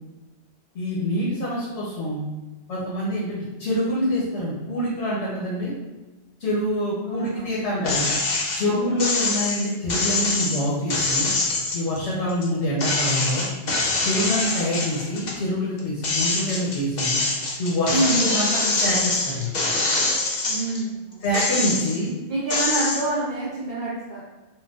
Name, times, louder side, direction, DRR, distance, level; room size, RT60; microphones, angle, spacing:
voice 1, 0.7-2.3 2.7-5.7 6.4-8.2 8.5-11.3 11.7-13.4 14.0-17.2 17.6-19.5 21.2-22.1, equal, 80° left, -7 dB, 1.1 m, -26 dB
voice 2, 7.0-7.5 8.6-9.0 17.9-18.2 20.4-21.6 22.3-24.2, right 2 dB, 50° right, -10 dB, 0.9 m, -27 dB
sound 1, 7.8-8.6 9.0-12.5 12.8-15.4 15.8-20.8 21.2-22.1 22.5-23.0, left 3 dB, 50° left, 0.6 m, -24 dB
4.5 x 2.2 x 2.3 m, 1.1 s
omnidirectional pair, 1.2 m